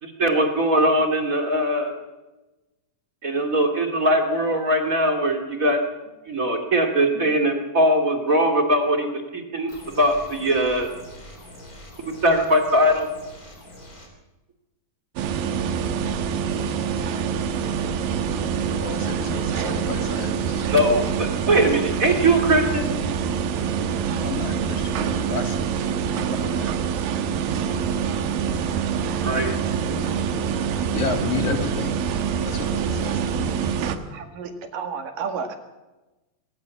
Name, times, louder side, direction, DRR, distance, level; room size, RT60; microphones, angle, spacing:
voice 1, 0.0-1.9 3.2-5.8 6.3-9.7 10.0-10.9 12.0-13.1 20.7-22.9 29.2-29.6, right 1 dB, 25° right, 4 dB, 2.4 m, -21 dB
sound 1, 9.7-14.1, left 1 dB, 25° left, 4.1 m, -44 dB
sound 2, 15.2-34.0, right 7 dB, 90° right, 3.1 m, -25 dB
voice 2, 18.8-20.7 24.2-25.8 26.4-26.7 30.9-32.0 32.4-33.9, left 5 dB, 60° left, 6 dB, 3.3 m, -32 dB
voice 3, 34.1-35.6, right 6 dB, 75° right, 6 dB, 3.6 m, -32 dB
21.5 x 18.0 x 7.2 m, 1.1 s
omnidirectional pair, 3.9 m